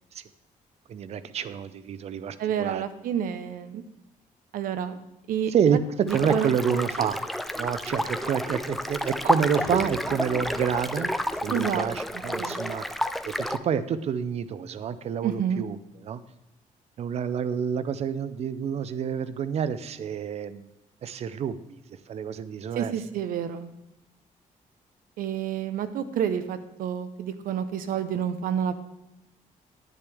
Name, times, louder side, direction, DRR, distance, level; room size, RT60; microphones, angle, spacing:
voice 1, 0.9-2.8 5.5-7.2 7.5-11.1 11.4-12.9 13.4-15.8 16.0-16.2 17.0-20.7 21.0-21.8 22.1-22.9, right 7 dB, 50° right, 14 dB, 0.5 m, -28 dB
voice 2, 2.4-3.8 4.5-5.0 5.3-6.5 11.5-11.9 12.1-12.6 15.2-15.6 22.7-23.7 25.2-28.7, right 9 dB, 90° right, 11 dB, 0.8 m, -29 dB
sound 1, 6.1-13.6, equal, ahead, 0.3 m, -30 dB
sound 2, 9.5-12.0, left 2 dB, 70° left, 2.4 m, -44 dB
10.0 x 10.0 x 3.5 m, 0.89 s
cardioid pair, 165°, 14 cm